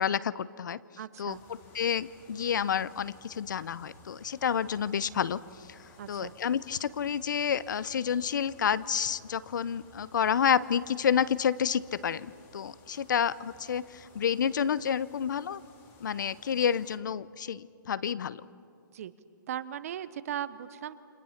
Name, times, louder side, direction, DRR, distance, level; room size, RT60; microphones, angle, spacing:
voice 1, 0.0-0.8 1.2-5.4 5.7-5.8 6.1-15.6 16.0-18.4, left 8 dB, 65° left, 19 dB, 0.7 m, -29 dB
voice 2, 1.0-1.4 6.0-6.3 18.9-19.1 19.5-21.0, right 10 dB, 45° right, 14 dB, 0.9 m, -37 dB
sound 1, 1.3-17.0, left 3 dB, 20° left, 2.6 m, -57 dB
29.0 x 25.5 x 5.8 m, 2.6 s
hypercardioid pair, 160°, 11 cm